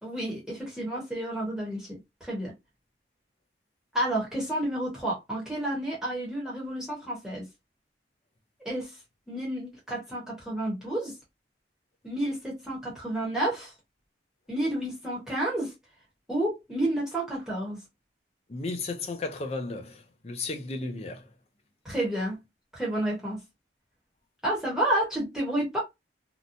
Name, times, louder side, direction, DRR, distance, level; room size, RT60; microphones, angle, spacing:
voice 1, 0.0-2.5 3.9-7.5 8.6-9.0 9.3-11.2 12.0-13.7 14.5-15.7 16.3-17.8 21.8-22.4 22.7-23.4 24.4-25.8, right 1 dB, 5° right, 1.0 m, -30 dB
voice 2, 18.5-21.2, left 3 dB, 35° left, 0.5 m, -34 dB
2.8 x 2.1 x 2.5 m
head